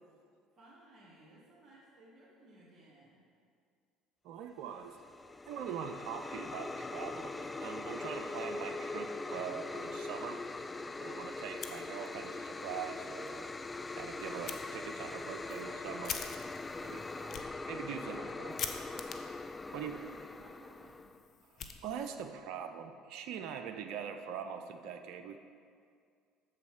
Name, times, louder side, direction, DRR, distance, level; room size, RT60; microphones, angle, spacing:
voice 1, 0.5-3.2 17.2-17.5 17.8-18.4 19.6-21.1, right 2 dB, 40° right, -8 dB, 2.1 m, -58 dB
voice 2, 4.2-5.0 5.5-10.4 11.0-13.5 13.9-16.2 16.8-17.1 17.7-18.5 19.7-19.9 21.5-25.4, right 8 dB, 65° right, 6 dB, 0.5 m, -42 dB
sound 1, 4.8-21.2, left 3 dB, 20° left, 0.3 m, -42 dB
Fire, 11.5-12.4 12.7-12.8 13.2-13.3 14.5-14.6 15.2-22.3, left 7 dB, 50° left, 0.7 m, -46 dB
8.3 x 7.2 x 4.8 m, 2.3 s
hypercardioid pair, 70°, 0 cm